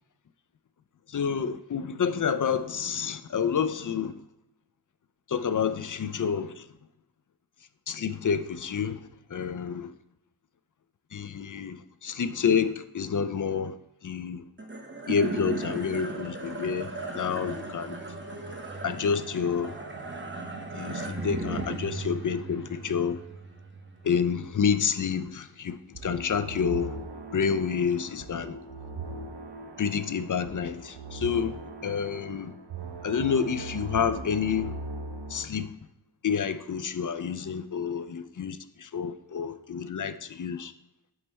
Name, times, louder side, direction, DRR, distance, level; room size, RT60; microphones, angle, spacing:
voice 1, 1.1-4.1 5.3-6.6 7.9-9.0 9.3-9.9 11.1-13.8 14.0-14.4 15.1-18.0 18.8-19.8 20.7-23.2 24.0-27.0 27.3-28.6 29.8-32.5 33.0-34.7 35.3-35.7 36.2-40.7, left 6 dB, 45° left, 0.4 m, -29 dB
sound 1, 14.6-25.1, right 2 dB, 25° right, 0.9 m, -37 dB
sound 2, 25.9-35.5, right 2 dB, 60° right, 0.8 m, -40 dB
7.7 x 3.2 x 4.2 m
wide cardioid pair, 80°, 46 cm